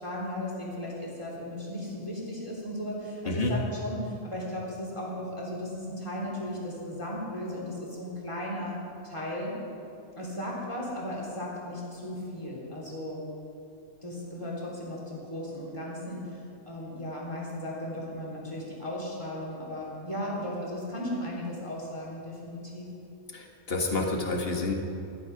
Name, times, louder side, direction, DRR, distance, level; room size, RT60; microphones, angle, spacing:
voice 1, 0.0-8.8 9.0-9.6 10.2-13.2 14.0-16.4 16.7-22.9, left 1 dB, 25° left, -5 dB, 3.6 m, -36 dB
voice 2, 23.3-24.7, left 3 dB, 55° left, 1 dB, 1.9 m, -29 dB
14.5 x 12.0 x 5.9 m, 2.7 s
omnidirectional pair, 1.2 m